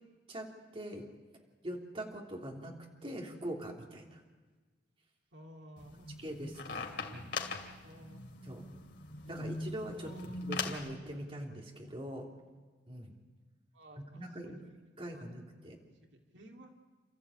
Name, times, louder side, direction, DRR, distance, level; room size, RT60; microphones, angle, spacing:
voice 1, 0.3-1.1 1.6-2.7 3.0-4.2 6.2-7.3 8.4-8.6 9.3-12.3 12.9-13.1 14.0-14.6 15.0-15.8, right 1 dB, 30° right, 0 dB, 3.2 m, -43 dB
voice 2, 5.3-6.1 7.0-7.2 7.8-8.2 9.2-9.5 10.0-10.4 13.7-14.7 15.1-15.2 15.8-15.9 16.3-16.7, right 1 dB, 75° right, 1 dB, 2.4 m, -54 dB
sound 1, 5.8-10.9, left 3 dB, 65° left, 2.7 m, -41 dB
30.0 x 14.0 x 8.7 m, 1.4 s
head